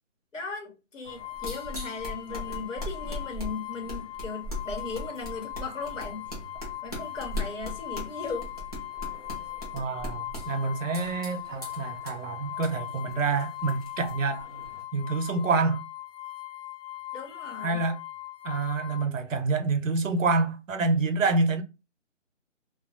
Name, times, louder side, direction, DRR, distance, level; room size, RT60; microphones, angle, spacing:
voice 1, 0.3-6.3 6.8-8.5 17.1-17.8, left 4 dB, 75° left, 1.1 m, -37 dB
sound 1, 1.0-14.8, left 1 dB, 30° left, 0.6 m, -40 dB
sound 2, 1.1-19.1, left 15 dB, 55° left, 1.0 m, -40 dB
voice 2, 9.7-14.5 14.9-15.8 17.6-18.0 18.4-21.6, right 3 dB, 80° right, 0.6 m, -27 dB
2.2 x 2.0 x 2.7 m
hypercardioid pair, 180°, 38 cm